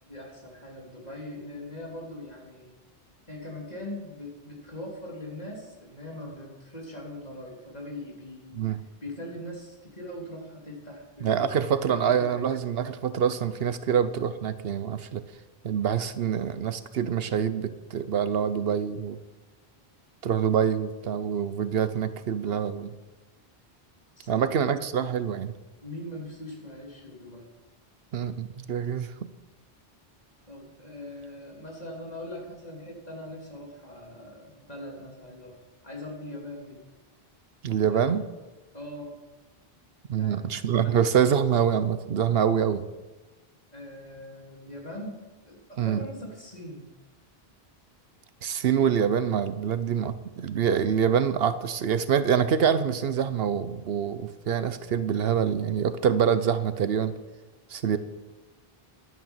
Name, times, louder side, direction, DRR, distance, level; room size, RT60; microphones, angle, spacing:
voice 1, 0.0-2.7 3.3-8.6 9.0-12.5 24.2-24.7 25.8-27.5 30.5-35.6 35.8-36.8 37.9-38.2 38.7-39.1 40.2-41.0 43.7-45.1 45.4-45.6 45.8-46.9, left 1 dB, 40° left, -1 dB, 3.3 m, -41 dB
voice 2, 11.2-15.2 15.6-19.2 20.2-22.9 24.3-25.5 28.1-29.3 37.6-38.3 40.1-42.9 45.8-46.0 48.4-57.1 57.7-58.0, right 8 dB, 70° right, 13 dB, 0.9 m, -25 dB
11.0 x 9.0 x 7.4 m, 1.2 s
omnidirectional pair, 1.0 m